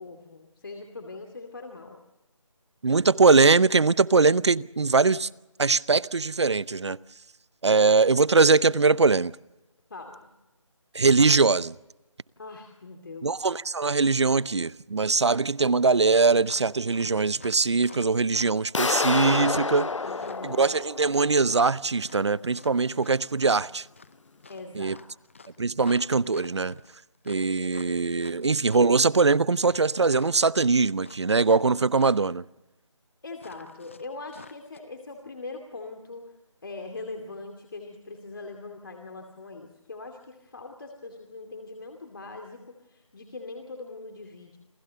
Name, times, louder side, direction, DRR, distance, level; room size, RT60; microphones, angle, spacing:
voice 1, 0.0-2.0 9.9-10.3 12.4-13.3 20.0-20.7 24.5-25.0 25.5-25.6 33.2-36.2 36.6-44.6, left 3 dB, 45° left, 2.6 m, -41 dB
voice 2, 2.8-5.3 5.6-7.0 7.6-9.3 10.9-11.8 13.2-19.9 20.4-23.9 24.7-25.0 25.6-26.8 27.3-32.4, right 4 dB, 55° right, 0.7 m, -22 dB
sound 1, 16.4-31.7 31.9-32.3 33.4-34.8, left 4 dB, 25° left, 0.7 m, -49 dB
sound 2, 18.7-21.6, left 4 dB, 65° left, 0.8 m, -28 dB
28.0 x 16.5 x 6.8 m
figure-of-eight pair, 170°, 17 cm